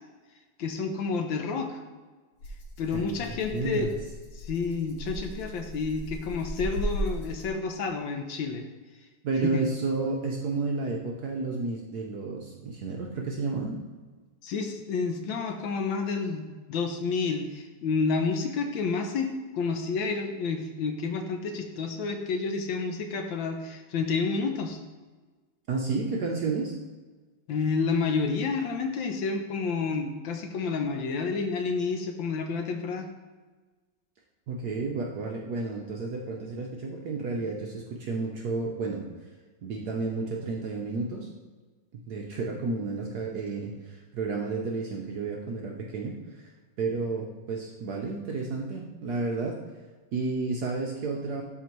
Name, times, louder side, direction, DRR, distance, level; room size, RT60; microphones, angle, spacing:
voice 1, 0.6-1.8 2.8-3.9 4.3-8.6 9.4-9.6 14.4-24.8 27.5-33.1, left 4 dB, 70° left, 5 dB, 1.3 m, -30 dB
Rattle (instrument), 2.4-7.7, equal, 90° left, 2.1 m, -37 dB
voice 2, 2.9-3.9 9.2-13.8 25.7-26.7 34.5-39.0 39.6-41.3 41.9-46.5 46.8-49.6 50.1-51.4, right 3 dB, 65° right, 0 dB, 1.0 m, -31 dB
12.0 x 4.3 x 3.0 m, 1.3 s
omnidirectional pair, 2.4 m